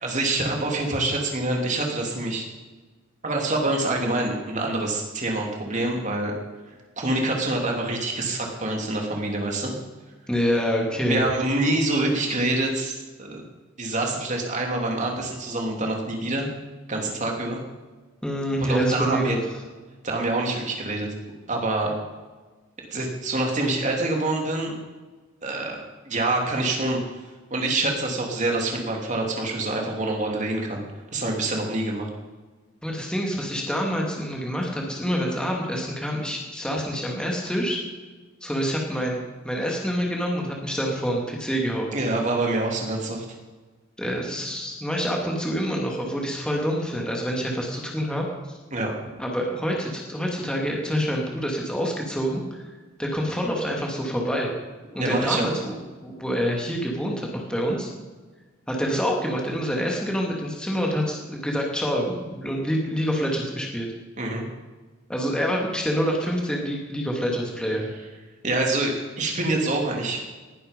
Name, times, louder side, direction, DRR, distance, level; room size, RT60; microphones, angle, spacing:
voice 1, 0.0-2.4 3.2-6.3 7.0-9.7 11.0-13.4 13.8-16.5 16.9-17.6 18.6-19.4 20.0-21.1 21.5-21.9 22.9-24.7 25.4-27.0 27.5-30.8 31.1-32.1 41.9-43.2 48.7-48.9 55.0-55.5 64.2-64.4 68.4-70.2, right 2 dB, 40° right, 0 dB, 3.1 m, -26 dB
voice 2, 10.3-11.2 18.2-19.4 32.8-37.8 38.4-41.9 44.0-48.6 49.2-52.7 53.0-54.5 54.9-55.8 56.0-57.9 58.7-63.9 65.1-67.9, equal, 5° left, -1 dB, 2.4 m, -26 dB
19.5 x 11.0 x 5.3 m, 1.3 s
head